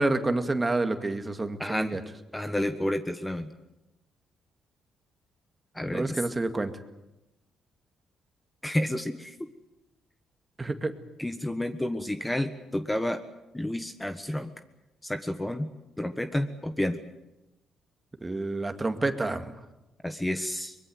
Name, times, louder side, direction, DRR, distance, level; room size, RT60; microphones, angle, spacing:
voice 1, 0.0-2.0 5.9-6.7 10.6-10.9 18.2-19.5, right 2 dB, 20° right, 7 dB, 2.1 m, -28 dB
voice 2, 1.6-2.0 2.3-3.5 5.7-6.2 8.6-9.4 11.2-13.2 13.5-14.5 15.0-15.7 16.0-17.0 20.0-20.8, left 1 dB, 10° left, 8 dB, 1.4 m, -30 dB
24.0 x 22.0 x 8.0 m, 0.97 s
cardioid pair, 90°, 0 cm